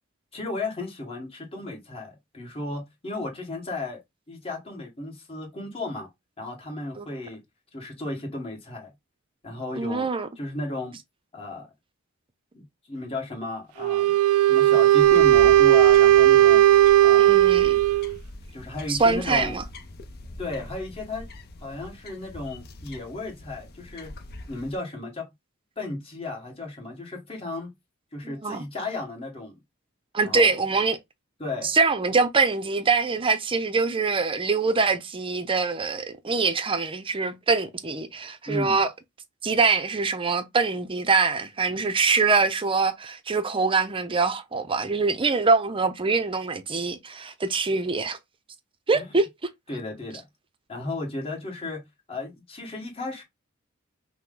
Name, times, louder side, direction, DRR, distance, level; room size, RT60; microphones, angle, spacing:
voice 1, 0.3-4.0 4.3-6.1 6.4-7.4 7.7-8.9 9.4-10.1 10.4-11.0 11.3-11.7 12.5-14.1 14.5-16.7 17.0-17.4 18.5-19.6 20.4-21.3 21.6-24.1 24.5-25.3 25.8-27.7 28.1-29.6 30.2-30.6 31.4-31.7 38.5-38.8 48.9-49.1 49.7-50.2 50.7-51.8 52.1-53.2, left 2 dB, 25° left, 1.6 m, -34 dB
voice 2, 9.7-10.3 17.2-17.8 18.9-19.6 28.2-28.6 30.1-31.0 31.6-38.9 39.4-48.2 48.9-49.3, right 4 dB, 25° right, 0.6 m, -24 dB
Wind instrument woodwind instrument, 13.8-18.2, right 13 dB, 90° right, 0.3 m, -16 dB
sound 1, 15.0-24.8, left 2 dB, 50° left, 0.7 m, -42 dB
5.8 x 2.1 x 3.8 m
head